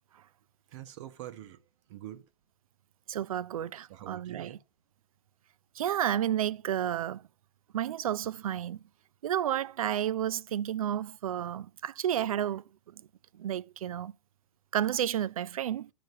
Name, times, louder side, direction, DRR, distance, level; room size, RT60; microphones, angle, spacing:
voice 1, 0.7-1.6 1.9-2.3 3.9-4.6, right 12 dB, 55° right, 1.0 m, -45 dB
voice 2, 3.1-4.5 5.8-7.2 7.7-8.8 9.2-12.6 13.4-14.1 14.7-15.9, right 11 dB, 80° right, 0.4 m, -31 dB
10.5 x 5.1 x 5.4 m
hypercardioid pair, 110°, 18 cm